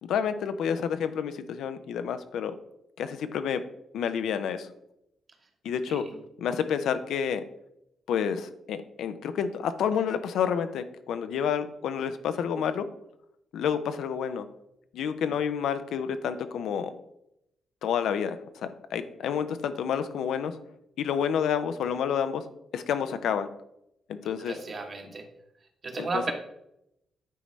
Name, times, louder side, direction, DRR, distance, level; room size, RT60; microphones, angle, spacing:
voice 1, 0.0-2.5 3.0-3.6 3.9-4.7 5.6-6.0 6.4-7.4 8.1-12.9 13.5-14.4 14.9-16.9 17.8-20.5 21.0-22.5 22.7-23.5 24.2-24.6 25.9-26.3, left 7 dB, 80° left, 10 dB, 0.4 m, -29 dB
voice 2, 24.4-25.2 25.8-26.3, right 3 dB, 45° right, 3 dB, 1.1 m, -33 dB
9.1 x 4.0 x 3.1 m, 0.82 s
cardioid pair, 75°, 0 cm